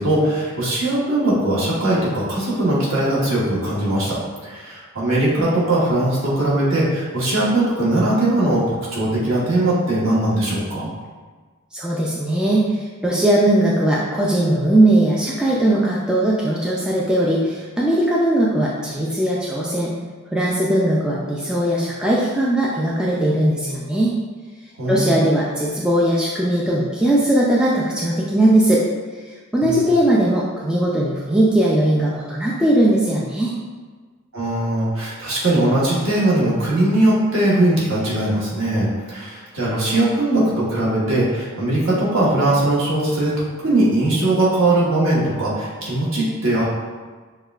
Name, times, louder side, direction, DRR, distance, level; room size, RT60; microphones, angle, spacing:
voice 1, 0.0-8.6 8.9-10.9 24.8-25.2 29.6-29.8 34.3-46.6, right 1 dB, 60° right, -7 dB, 1.2 m, -20 dB
voice 2, 11.7-19.9 20.3-24.1 24.9-28.8 29.5-33.5, right 1 dB, 5° right, -5 dB, 0.3 m, -19 dB
6.4 x 2.3 x 2.3 m, 1.4 s
head